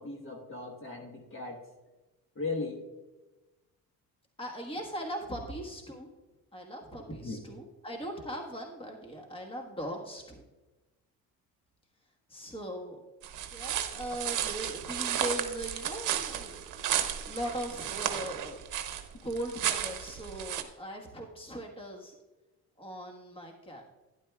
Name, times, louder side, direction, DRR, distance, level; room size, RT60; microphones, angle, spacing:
voice 1, 0.0-1.6 2.4-2.8 7.1-7.4, left 3 dB, 35° left, 0 dB, 1.4 m, -37 dB
voice 2, 4.4-6.1 6.5-10.4 12.3-13.0 13.5-18.9 19.2-22.1 22.8-23.8, right 1 dB, 15° left, 1 dB, 1.5 m, -39 dB
sound 1, 13.2-20.6, right 10 dB, 55° right, 0.9 m, -33 dB
11.5 x 10.5 x 2.4 m, 1.1 s
cardioid pair, 95°, 36 cm